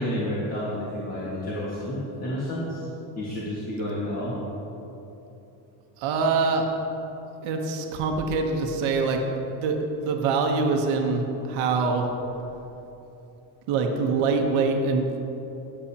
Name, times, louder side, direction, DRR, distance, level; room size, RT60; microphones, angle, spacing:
voice 1, 0.0-2.8 3.2-4.4, equal, 30° left, -7 dB, 2.0 m, -30 dB
voice 2, 6.0-6.7 7.4-9.2 9.5-12.1 13.7-15.3, right 4 dB, 85° right, 2 dB, 1.2 m, -24 dB
18.5 x 6.8 x 2.9 m, 3.0 s
supercardioid pair, 90°, 47 cm